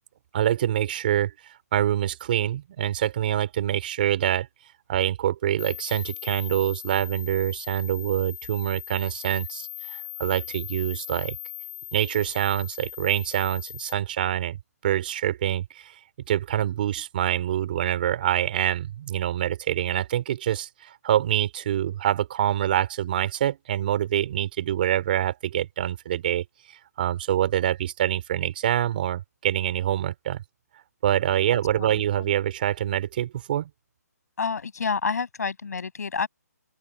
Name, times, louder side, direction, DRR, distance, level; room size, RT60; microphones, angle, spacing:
voice 1, 0.3-1.3 1.7-4.5 4.9-11.4 11.9-14.6 14.8-16.0 16.3-26.4 27.0-30.4 31.0-33.7, right 11 dB, 35° right, 4.5 m, -25 dB
sound 1, 5.6-13.9, left 12 dB, 10° left, 1.5 m, -39 dB
voice 2, 31.5-31.9 32.2-32.3 34.4-36.3, left 5 dB, 70° left, 7.5 m, -29 dB
open air
hypercardioid pair, 165°, 9 cm